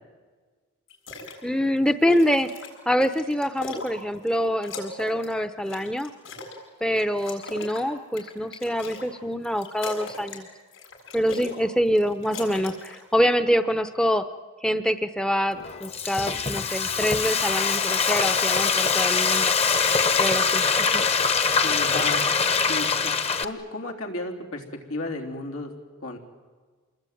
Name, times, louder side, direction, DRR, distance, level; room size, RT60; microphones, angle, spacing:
sound 1, 0.9-1.4 1.8-4.4 4.6-6.6 7.0-9.1 9.4-10.4 10.7-11.6 11.9-13.0, left 2 dB, 70° left, 7.9 m, -39 dB
voice 1, 1.4-2.5 2.9-6.1 6.8-10.5 11.1-14.2 14.6-19.5 20.2-21.1, equal, 5° left, 10 dB, 0.7 m, -25 dB
Frying (food), 15.6-23.4, left 5 dB, 30° left, 1.1 m, -23 dB
voice 2, 21.5-22.3 22.7-23.1 23.4-24.6 24.9-25.7 26.0-26.2, left 2 dB, 90° left, 2 dB, 3.6 m, -33 dB
27.5 x 21.0 x 9.3 m, 1.5 s
head